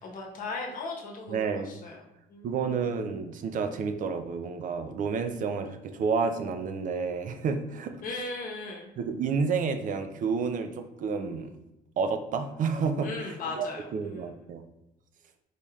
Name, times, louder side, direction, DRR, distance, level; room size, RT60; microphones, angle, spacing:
voice 1, 0.0-2.0 2.3-2.6 8.0-8.9 13.0-14.5, left 3 dB, 55° left, -1 dB, 1.0 m, -38 dB
voice 2, 1.3-1.7 2.4-7.9 9.0-11.5 12.0-14.6, right 5 dB, 50° right, 7 dB, 0.4 m, -30 dB
4.2 x 3.2 x 2.3 m, 0.91 s
cardioid pair, 110°, 17 cm